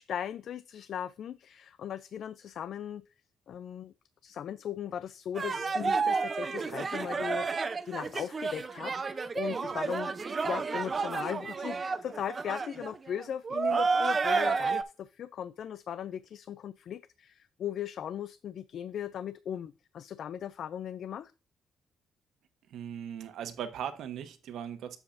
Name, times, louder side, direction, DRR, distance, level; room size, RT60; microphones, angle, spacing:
voice 1, 0.0-3.0 3.5-3.9 4.2-10.1 10.4-21.3, left 9 dB, 65° left, 0.3 m, -38 dB
sound 1, 5.4-14.8, right 4 dB, 35° right, 0.6 m, -31 dB
voice 2, 22.7-25.0, right 9 dB, 75° right, 1.1 m, -38 dB
8.4 x 7.2 x 2.6 m
cardioid pair, 90°, 0 cm